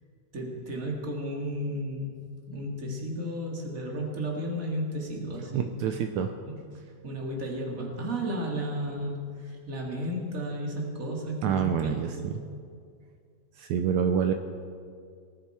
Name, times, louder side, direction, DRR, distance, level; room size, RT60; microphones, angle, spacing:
voice 1, 0.3-2.1 2.5-5.9 6.5-6.6 7.0-12.4, equal, 30° right, -1 dB, 2.5 m, -33 dB
voice 2, 5.5-6.3 11.4-12.1 13.6-14.3, right 8 dB, 80° right, 6 dB, 2.0 m, -26 dB
19.0 x 14.0 x 4.4 m, 2.2 s
omnidirectional pair, 3.3 m